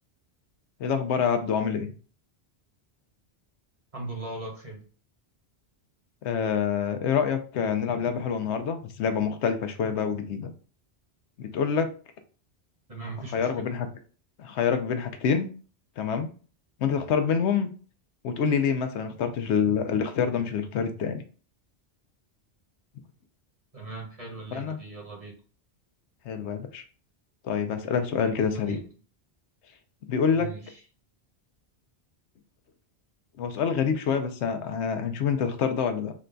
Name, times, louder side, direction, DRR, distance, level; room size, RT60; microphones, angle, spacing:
voice 1, 0.8-1.9 6.2-10.5 11.4-11.9 13.3-13.9 14.4-15.5 16.0-16.3 16.8-17.7 18.2-21.2 24.5-24.8 26.3-26.8 27.4-28.8 30.1-30.5 33.4-36.1, left 6 dB, 85° left, 8 dB, 0.9 m, -26 dB
voice 2, 3.9-4.8 12.9-13.5 23.7-25.4 28.4-28.8 30.4-30.8, right 3 dB, 35° right, -1 dB, 1.2 m, -39 dB
4.0 x 2.2 x 3.8 m, 0.38 s
omnidirectional pair, 1.1 m